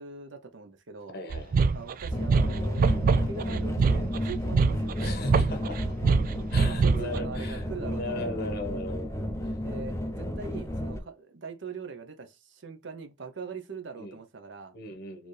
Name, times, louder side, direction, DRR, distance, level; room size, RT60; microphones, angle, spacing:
voice 1, 0.0-1.2 1.7-5.0 6.6-8.2 9.6-14.7, right 5 dB, 65° right, 0.8 m, -42 dB
voice 2, 1.1-1.7 5.0-5.8 6.5-9.1 9.4-9.6 14.0-14.2 14.7-15.3, left 1 dB, 55° left, 1.1 m, -37 dB
sound 1, 1.3-7.2, right 4 dB, 45° right, 0.3 m, -24 dB
sound 2, 2.1-11.0, left 1 dB, 15° left, 0.6 m, -32 dB
4.3 x 3.0 x 3.2 m
head